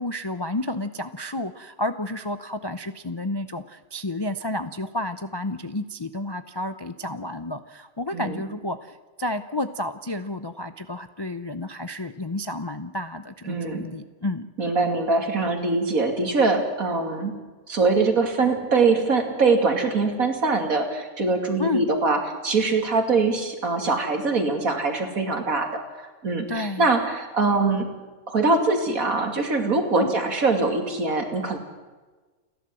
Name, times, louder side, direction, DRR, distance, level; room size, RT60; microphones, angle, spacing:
voice 1, 0.0-14.5 21.6-21.9 26.5-26.9 29.9-30.1, left 2 dB, 30° left, 10 dB, 0.4 m, -31 dB
voice 2, 13.5-13.8 14.6-17.3 17.7-25.8 26.2-27.9 28.3-31.6, right 3 dB, 70° right, 4 dB, 3.0 m, -23 dB
29.5 x 11.5 x 7.7 m, 1.3 s
omnidirectional pair, 1.5 m